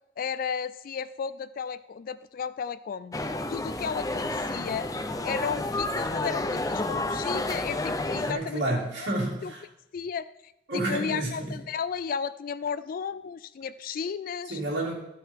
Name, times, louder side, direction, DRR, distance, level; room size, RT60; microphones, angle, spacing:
voice 1, 0.2-3.2 3.5-4.9 5.2-8.8 9.4-9.5 9.9-14.6, left 6 dB, 50° left, 15 dB, 0.3 m, -34 dB
sound 1, 3.1-8.3, left 2 dB, 20° left, 0.7 m, -30 dB
voice 2, 8.2-9.6 10.7-11.6 14.5-14.9, right 1 dB, 80° right, -4 dB, 3.3 m, -30 dB
14.0 x 5.7 x 4.6 m, 0.87 s
head